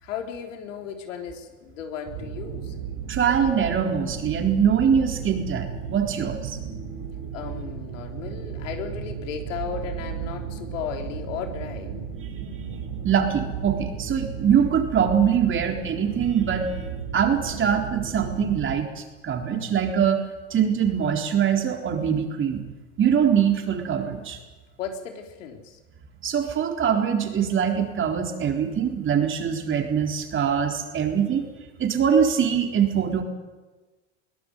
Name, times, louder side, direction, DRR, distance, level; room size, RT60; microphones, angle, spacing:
voice 1, 0.0-2.7 7.3-11.9 24.8-25.8, left 7 dB, 85° left, 4 dB, 3.6 m, -35 dB
sound 1, 2.1-18.8, right 7 dB, 55° right, 7.6 m, -34 dB
voice 2, 3.1-6.6 13.0-16.9 17.1-20.2 20.5-22.6 23.0-24.4 26.2-31.5 31.8-33.2, right 7 dB, 30° right, 3 dB, 3.9 m, -23 dB
22.0 x 17.5 x 9.4 m, 1.2 s
supercardioid pair, 105°, 37 cm